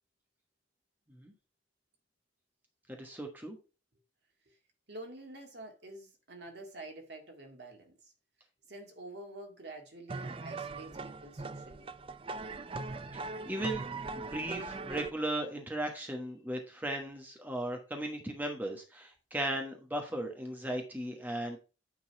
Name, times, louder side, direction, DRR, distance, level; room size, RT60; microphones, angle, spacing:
voice 1, 2.9-3.6 13.1-13.9 14.1-21.6, right 1 dB, 10° right, 1.1 m, -37 dB
voice 2, 4.9-8.1 8.6-11.9, right 2 dB, 60° right, 2.0 m, -48 dB
sound 1, 10.1-15.1, right 3 dB, 30° right, 0.4 m, -40 dB
9.0 x 3.9 x 4.7 m
head